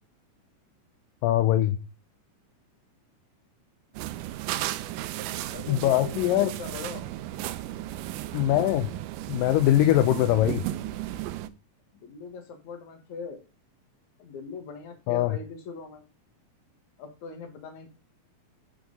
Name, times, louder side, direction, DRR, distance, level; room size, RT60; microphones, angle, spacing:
voice 1, 1.2-1.8 5.7-6.5 8.3-8.9 9.3-10.6 15.1-15.4, left 13 dB, 80° left, 10 dB, 2.2 m, -22 dB
sound 1, 3.9-11.5, right 14 dB, 80° right, 2.0 m, -34 dB
voice 2, 5.5-7.1 11.9-13.4 14.2-16.0 17.0-17.9, left 5 dB, 60° left, 5 dB, 2.7 m, -40 dB
8.9 x 4.7 x 5.3 m, 0.33 s
omnidirectional pair, 4.1 m